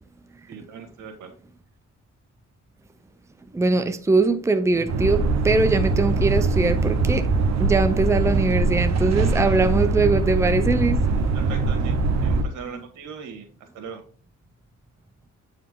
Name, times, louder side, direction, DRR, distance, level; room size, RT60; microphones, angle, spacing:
voice 1, 0.5-1.3 11.3-13.5 13.7-14.0, right 6 dB, 85° right, 1.9 m, -39 dB
voice 2, 3.5-7.3 7.6-11.0, right 3 dB, 10° right, 0.7 m, -21 dB
sound 1, 4.9-12.4, right 3 dB, 60° right, 1.1 m, -22 dB
8.6 x 4.9 x 3.7 m
cardioid pair, 90°, 30 cm